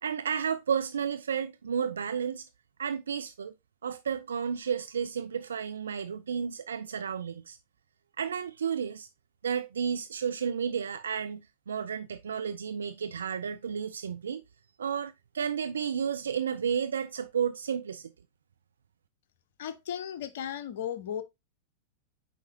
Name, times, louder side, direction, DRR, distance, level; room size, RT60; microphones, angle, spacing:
voice 1, 0.0-2.5 2.8-3.5 3.8-7.6 8.2-9.1 9.4-14.4 14.8-18.1, right 7 dB, 70° right, 0.4 m, -32 dB
voice 2, 19.6-21.2, left 9 dB, 55° left, 0.7 m, -35 dB
8.3 x 4.7 x 2.8 m
figure-of-eight pair, 90°, 0 cm